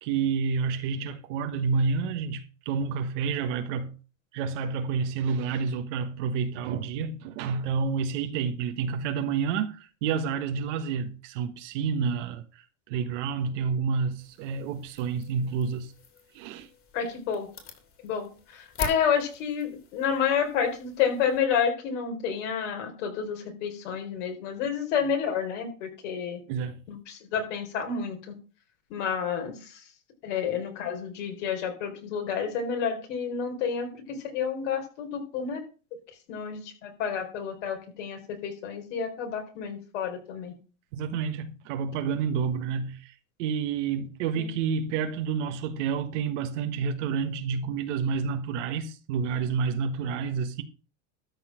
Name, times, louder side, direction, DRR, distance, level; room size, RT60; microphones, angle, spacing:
voice 1, 0.0-4.0 4.3-15.9 16.3-16.7 26.5-26.8 40.9-43.1 43.4-50.6, right 6 dB, 70° right, 1.4 m, -29 dB
sound 1, 14.2-21.4, left 4 dB, 35° left, 3.2 m, -44 dB
voice 2, 16.9-17.5 18.0-26.4 26.9-28.3 28.9-29.8 30.2-35.6 36.3-40.5 44.3-44.5, left 7 dB, 70° left, 4.4 m, -30 dB
13.0 x 4.6 x 7.5 m
hypercardioid pair, 105°, 38 cm